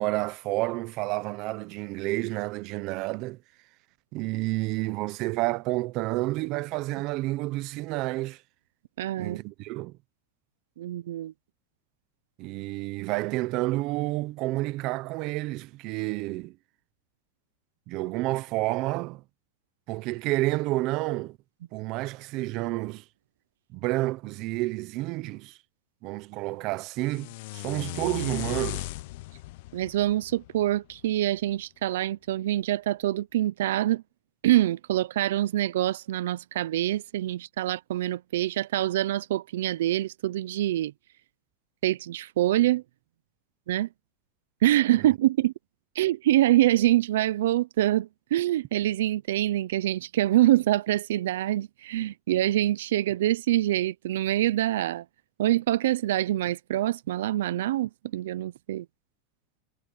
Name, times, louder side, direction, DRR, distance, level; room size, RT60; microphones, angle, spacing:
voice 1, 0.0-3.4 4.1-8.4 9.2-10.0 12.4-16.6 17.9-19.2 19.9-21.4 21.7-23.0 23.7-25.6 26.0-28.9 45.0-45.1, right 20 dB, 35° right, 0.6 m, -30 dB
voice 2, 9.0-9.4 10.8-11.3 29.7-34.0 34.4-40.9 41.8-42.8 43.7-43.9 44.6-45.5 46.0-55.0 55.4-58.9, right 14 dB, 75° right, 0.5 m, -25 dB
sound 1, 27.0-31.2, left 18 dB, 50° left, 0.7 m, -37 dB
supercardioid pair, 170°, 0 cm